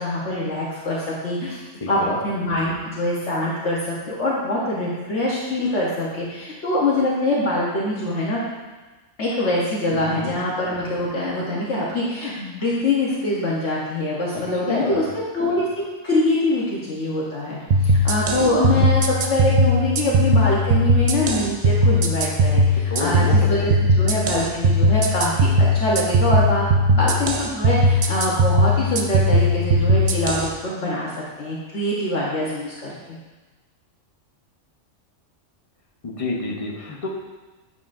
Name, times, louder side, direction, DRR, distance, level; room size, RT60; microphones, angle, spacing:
voice 1, 0.0-8.4 9.2-15.0 15.3-15.7 16.0-31.1 31.4-33.2, left 1 dB, 65° left, -6 dB, 1.3 m, -24 dB
voice 2, 1.8-2.2 9.9-10.4 14.3-15.1 18.4-18.9 22.7-23.7 36.0-37.1, left 3 dB, 30° left, -1 dB, 0.8 m, -29 dB
sound 1, 17.7-30.5, equal, 65° right, 0.4 m, -18 dB
8.4 x 5.5 x 2.5 m, 1.2 s
omnidirectional pair, 1.3 m